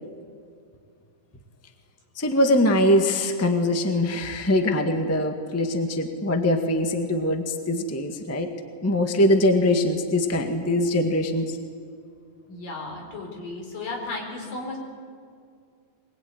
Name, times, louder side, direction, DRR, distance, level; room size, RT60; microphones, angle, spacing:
voice 1, 2.2-8.5 8.8-11.6, left 1 dB, 10° left, 5 dB, 1.0 m, -22 dB
voice 2, 12.5-14.8, left 3 dB, 85° left, 1 dB, 6.3 m, -34 dB
23.5 x 21.5 x 9.6 m, 2.2 s
omnidirectional pair, 3.8 m